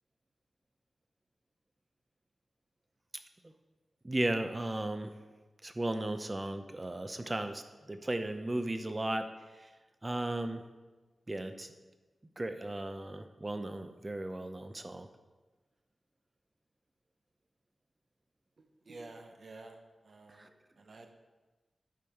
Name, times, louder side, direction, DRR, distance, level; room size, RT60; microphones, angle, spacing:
voice 1, 4.0-5.1 5.6-7.6 7.9-9.3 10.0-10.6 11.3-11.7 12.4-15.1 20.4-20.5, right 1 dB, 20° right, 8 dB, 0.5 m, -35 dB
voice 2, 18.8-19.8 20.0-20.5 20.8-21.1, right 2 dB, 55° right, 5 dB, 0.9 m, -50 dB
8.6 x 5.5 x 4.5 m, 1.2 s
wide cardioid pair, 130°, 0 cm